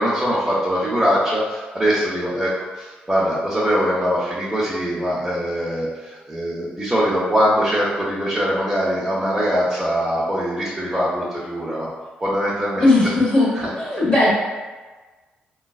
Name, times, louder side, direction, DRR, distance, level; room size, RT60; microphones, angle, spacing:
voice 1, 0.0-11.9 12.2-13.1 13.5-13.7, equal, 15° right, -8 dB, 0.8 m, -22 dB
voice 2, 12.8-13.5 13.8-14.3, left 2 dB, 30° left, -7 dB, 0.9 m, -17 dB
3.8 x 2.4 x 2.3 m, 1.3 s
supercardioid pair, 60°, 4 cm